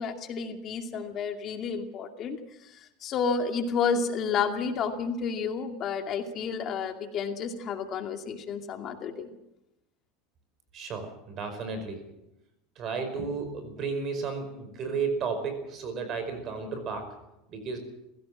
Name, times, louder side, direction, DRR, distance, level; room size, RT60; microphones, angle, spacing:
voice 1, 0.0-9.4, left 5 dB, 35° left, 5 dB, 2.4 m, -31 dB
voice 2, 10.7-12.0 12.8-17.1 17.5-17.8, right 5 dB, 40° right, 8 dB, 5.1 m, -33 dB
21.0 x 16.5 x 7.5 m, 0.90 s
supercardioid pair, 135°, 0 cm